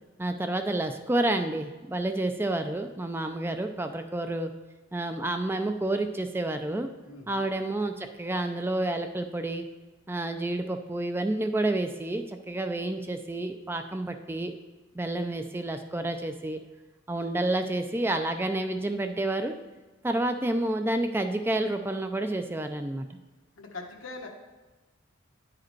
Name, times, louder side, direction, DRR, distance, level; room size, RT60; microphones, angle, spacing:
voice 1, 0.2-4.5 4.9-6.9 7.3-9.6 10.1-14.5 14.9-16.6 17.1-19.5 20.0-23.2, right 1 dB, 10° right, 7 dB, 0.4 m, -29 dB
voice 2, 7.0-7.5 23.6-24.3, left 3 dB, 80° left, 1 dB, 1.3 m, -41 dB
10.5 x 4.9 x 4.5 m, 1.2 s
head